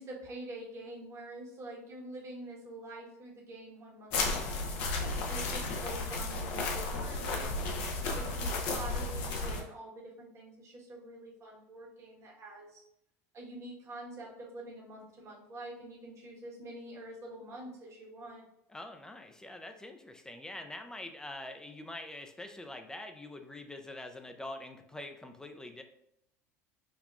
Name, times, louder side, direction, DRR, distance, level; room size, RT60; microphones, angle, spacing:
voice 1, 0.0-7.6 8.0-12.8 13.3-18.4, right 1 dB, 35° right, -2 dB, 1.2 m, -46 dB
sound 1, 4.1-9.6, left 3 dB, 65° left, 0.7 m, -33 dB
voice 2, 18.7-25.8, left 1 dB, 10° left, 5 dB, 0.5 m, -45 dB
5.3 x 2.3 x 2.3 m, 0.77 s
hypercardioid pair, 80°, 8 cm